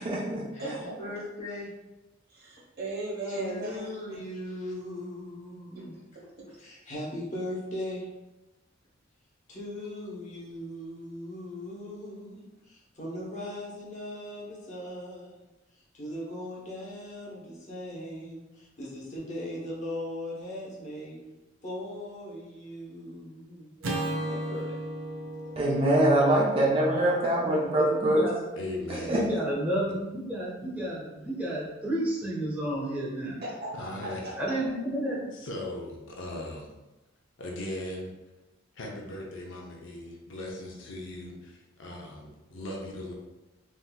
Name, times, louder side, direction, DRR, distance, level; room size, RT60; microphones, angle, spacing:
voice 1, 0.0-0.5 25.6-28.3 28.9-29.3, right 1 dB, 30° right, -4 dB, 0.4 m, -24 dB
voice 2, 0.5-1.7 3.3-6.0 6.6-8.1 9.5-21.2 21.6-23.7 24.3-24.8, left 1 dB, 40° left, -5 dB, 0.9 m, -39 dB
voice 3, 2.3-3.9 5.7-5.8 33.4-33.7 34.0-34.6, right 2 dB, 50° right, -4 dB, 1.0 m, -36 dB
Acoustic guitar / Strum, 23.8-28.2, right 1 dB, 85° right, 0.6 m, -36 dB
voice 4, 26.9-28.4 29.0-33.4 34.4-35.3, right 1 dB, 10° right, -6 dB, 0.8 m, -32 dB
voice 5, 28.6-29.2 33.7-34.2 35.3-36.7 37.4-38.1 38.7-43.1, left 1 dB, 70° left, -2 dB, 0.6 m, -38 dB
3.6 x 2.7 x 2.2 m, 1.1 s
head